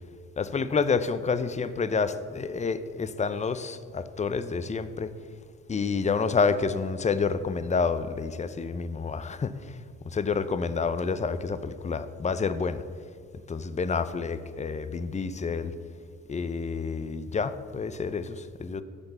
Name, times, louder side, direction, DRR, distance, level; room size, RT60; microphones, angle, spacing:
voice 1, 0.4-5.1 5.7-9.5 10.1-12.8 13.5-15.7 16.3-18.8, left 5 dB, 25° left, 12 dB, 0.6 m, -28 dB
12.0 x 5.8 x 6.8 m, 2.1 s
cardioid pair, 90°, 30 cm